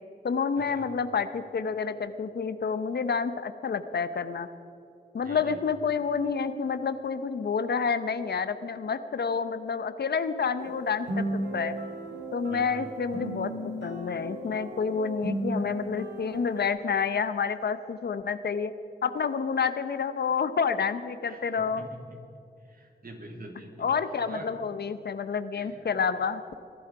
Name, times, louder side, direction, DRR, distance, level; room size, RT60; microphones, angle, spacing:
voice 1, 0.2-4.5 5.1-11.7 12.3-18.7 19.0-21.9 23.8-26.4, left 6 dB, 70° left, 12 dB, 0.8 m, -29 dB
voice 2, 5.2-5.6 12.5-12.7 21.3-21.6 21.9-22.2 22.7-23.9 24.3-24.5 25.5-25.8, right 1 dB, 55° right, 1 dB, 3.2 m, -44 dB
sound 1, 10.6-16.6, right 1 dB, 85° right, 2.3 m, -35 dB
22.0 x 11.5 x 4.8 m, 2.7 s
cardioid pair, 60°, 18 cm